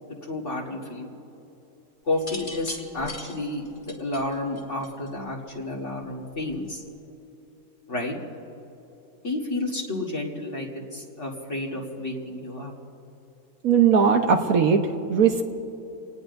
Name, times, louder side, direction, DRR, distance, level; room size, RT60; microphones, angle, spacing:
voice 1, 0.2-1.1 2.0-6.8 7.9-8.2 9.2-12.7, left 2 dB, 50° left, -3 dB, 2.1 m, -31 dB
sound 1, 2.1-5.3 6.4-6.7, left 1 dB, 30° left, 2.1 m, -40 dB
voice 2, 13.6-14.8 15.1-15.5, right 6 dB, 70° right, 4 dB, 1.3 m, -19 dB
26.5 x 19.0 x 2.6 m, 3.0 s
omnidirectional pair, 1.6 m